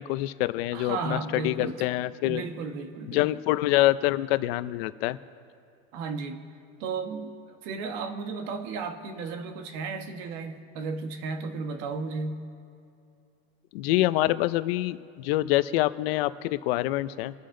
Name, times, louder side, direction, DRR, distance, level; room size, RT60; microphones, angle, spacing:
voice 1, 0.0-2.4 3.1-5.2 13.7-17.3, left 17 dB, 70° left, 14 dB, 0.7 m, -26 dB
voice 2, 0.7-1.8 2.2-3.4 5.9-6.4 6.8-12.4, right 4 dB, 65° right, 7 dB, 1.6 m, -34 dB
26.5 x 9.4 x 3.9 m, 2.5 s
supercardioid pair, 145°, 31 cm